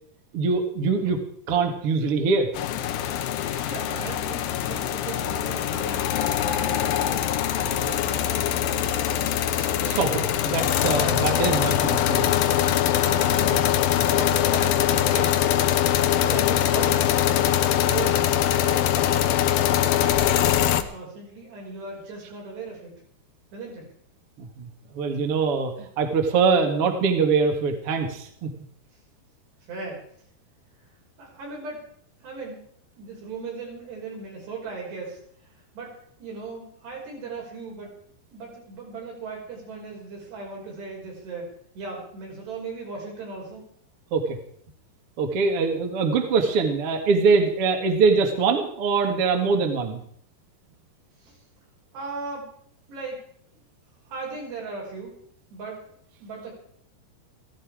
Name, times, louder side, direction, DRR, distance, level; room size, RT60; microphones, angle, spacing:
voice 1, 0.3-1.2 1.5-2.5 9.6-12.3 24.4-24.7 24.9-28.5 44.1-44.4 45.2-50.0, right 4 dB, 45° right, 4 dB, 2.0 m, -23 dB
sound 1, 2.5-20.8, left 11 dB, 75° left, 2.3 m, -23 dB
voice 2, 3.2-7.3 7.7-8.2 12.6-15.4 16.1-19.3 20.0-22.9 23.5-23.9 29.7-30.1 31.2-31.8 32.2-32.6 33.0-43.6 51.2-51.4 51.9-52.5 52.9-53.2 54.1-55.2 55.5-56.5, right 3 dB, 75° right, -2 dB, 7.8 m, -38 dB
15.5 x 15.5 x 5.0 m, 0.64 s
omnidirectional pair, 4.8 m